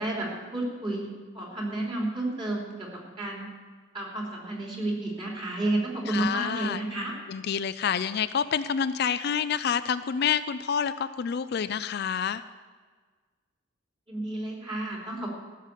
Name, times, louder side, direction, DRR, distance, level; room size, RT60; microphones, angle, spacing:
voice 1, 0.0-3.5 3.9-7.1 14.1-15.3, right 2 dB, 25° right, -2 dB, 3.1 m, -31 dB
voice 2, 6.1-6.8 7.3-12.4, left 7 dB, 55° left, 12 dB, 0.4 m, -28 dB
15.0 x 6.6 x 8.2 m, 1.5 s
head